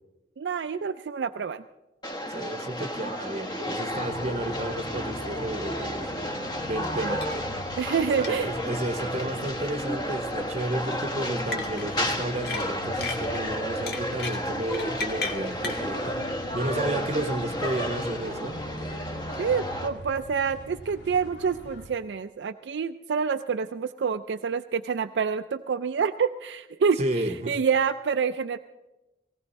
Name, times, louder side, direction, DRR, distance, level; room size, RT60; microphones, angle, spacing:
voice 1, 0.4-1.6 7.0-7.2 7.8-8.5 16.8-17.3 19.4-27.0 27.5-28.6, right 6 dB, 85° right, 8 dB, 0.4 m, -27 dB
sound 1, 2.0-19.9, equal, 25° left, 1.2 m, -32 dB
voice 2, 2.3-6.1 6.6-7.2 8.2-16.1 16.5-18.6 27.0-27.5, right 1 dB, 40° right, 8 dB, 0.8 m, -32 dB
sound 2, 3.9-21.9, equal, 80° left, 1.8 m, -42 dB
sound 3, 7.2-7.4 7.6-7.7 8.2-8.3 9.5-9.8 11.5-12.1 12.4-13.4 13.9-15.8, left 4 dB, 65° left, 1.6 m, -34 dB
18.0 x 17.5 x 4.2 m, 1.0 s
head